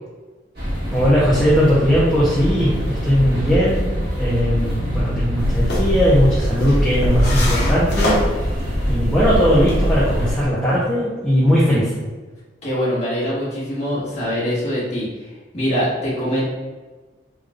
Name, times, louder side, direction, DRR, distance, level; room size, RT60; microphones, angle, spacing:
sound 1, 0.5-10.3, equal, 60° right, 1.5 m, -24 dB
voice 1, 0.9-8.2 8.9-11.9, equal, 5° left, -10 dB, 0.7 m, -18 dB
sound 2, 5.4-10.4, equal, 60° left, 1.0 m, -23 dB
voice 2, 12.6-16.4, equal, 40° left, -8 dB, 1.4 m, -23 dB
3.7 x 2.5 x 3.4 m, 1.3 s
head